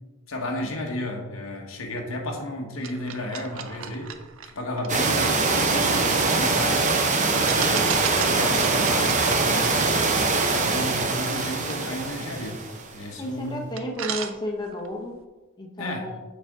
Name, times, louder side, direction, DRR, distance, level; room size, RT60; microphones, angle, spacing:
voice 1, 0.3-4.1 4.5-6.9 7.3-8.0 8.2-10.1 10.5-12.6 12.9-13.6 15.8-16.1, left 1 dB, 90° left, 1 dB, 1.2 m, -32 dB
sound 1, 2.8-6.8 7.5-13.1 13.4-13.5 13.8-14.9, right 8 dB, 70° right, 0.5 m, -37 dB
sound 2, 4.9-12.9, right 3 dB, 35° right, 0.7 m, -23 dB
voice 2, 13.2-15.1 15.6-16.2, left 1 dB, 20° left, 1 dB, 0.8 m, -32 dB
6.8 x 5.1 x 3.6 m, 1.1 s
head